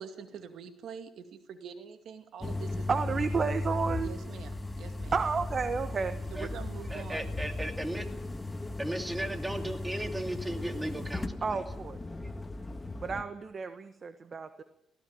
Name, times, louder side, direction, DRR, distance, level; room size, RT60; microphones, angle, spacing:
voice 1, 0.0-3.0 4.0-5.1 6.3-7.3, right 7 dB, 70° right, 8 dB, 2.2 m, -45 dB
sound 1, 2.4-13.2, left 2 dB, 15° left, 1.6 m, -36 dB
voice 2, 2.9-4.1 5.1-6.2 11.4-12.0 13.0-14.6, right 5 dB, 40° right, 10 dB, 1.4 m, -31 dB
voice 3, 6.9-8.1 8.8-11.6, right 1 dB, 10° right, 6 dB, 2.5 m, -36 dB
18.5 x 16.0 x 9.0 m, 0.75 s
cardioid pair, 90°, 0 cm